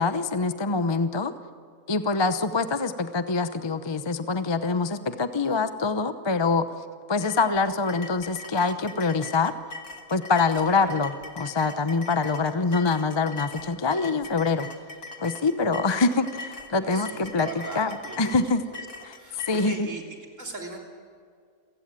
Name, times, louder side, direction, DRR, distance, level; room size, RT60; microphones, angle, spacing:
voice 1, 0.0-1.3 1.9-6.7 7.1-9.5 10.1-14.7 15.2-17.5 17.7-18.6 19.0-19.2 19.5-19.9, left 4 dB, 25° left, 10 dB, 0.7 m, -25 dB
sound 1, 7.2-19.7, left 4 dB, 80° left, 2.4 m, -41 dB
voice 2, 16.8-18.2 18.7-20.0 20.4-20.8, right 2 dB, 55° right, 1 dB, 3.8 m, -39 dB
28.5 x 16.5 x 9.1 m, 2.1 s
omnidirectional pair, 1.6 m